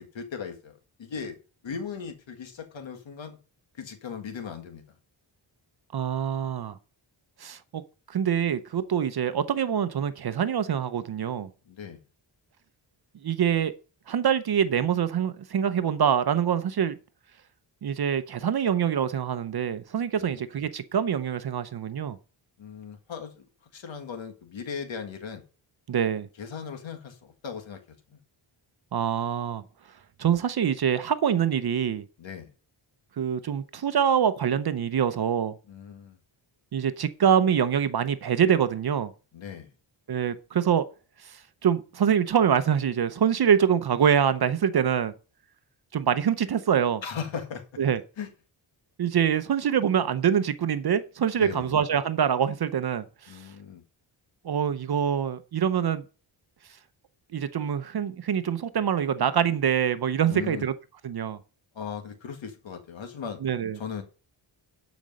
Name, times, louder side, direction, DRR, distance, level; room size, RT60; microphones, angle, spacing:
voice 1, 0.0-1.4 1.6-3.4 3.8-4.8 11.7-12.0 20.2-20.4 22.6-23.4 23.7-25.4 26.4-27.8 28.1-28.2 32.2-32.5 35.7-36.2 39.3-39.7 47.0-47.6 48.2-48.3 51.4-51.7 53.3-53.8 60.3-60.6 61.7-63.4 63.7-64.0, left 6 dB, 70° left, 1.8 m, -38 dB
voice 2, 5.9-6.8 7.4-7.8 8.1-11.5 13.2-13.7 14.1-17.0 17.8-22.2 25.9-26.3 28.9-29.6 30.2-32.0 33.2-35.5 36.7-39.1 40.1-40.8 41.2-45.1 45.9-47.0 47.8-48.0 49.0-53.5 54.4-56.0 57.3-60.7 61.0-61.4 63.4-63.8, right 8 dB, 50° right, 0.7 m, -25 dB
12.5 x 5.2 x 5.3 m
wide cardioid pair, 150°, 48 cm